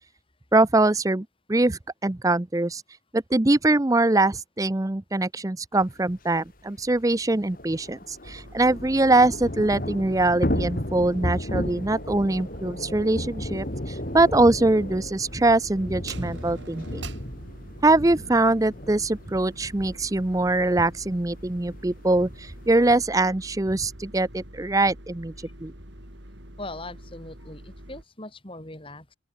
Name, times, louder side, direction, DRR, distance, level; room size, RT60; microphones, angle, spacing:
voice 1, 0.5-2.8 3.1-17.0 17.8-25.3 25.6-25.7, right 2 dB, 20° right, 0.6 m, -23 dB
Thunder / Rain, 6.1-6.2 6.5-6.6 6.9-22.7, left 1 dB, 45° left, 4.0 m, -34 dB
sound 1, 8.2-28.0, right 1 dB, 70° right, 7.4 m, -45 dB
voice 2, 26.6-29.1, left 2 dB, 30° left, 4.3 m, -40 dB
open air
head